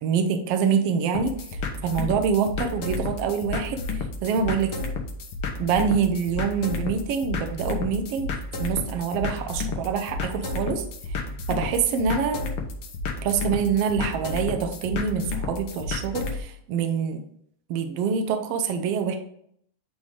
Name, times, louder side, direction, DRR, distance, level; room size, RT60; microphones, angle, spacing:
voice 1, 0.0-1.3 1.8-4.7 5.6-8.3 8.6-10.8 11.5-12.5 13.2-17.2 17.7-19.2, right 6 dB, 80° right, 6 dB, 1.3 m, -25 dB
sound 1, 1.1-16.4, left 3 dB, 85° left, 1.2 m, -32 dB
9.2 x 3.2 x 3.7 m, 0.68 s
omnidirectional pair, 3.6 m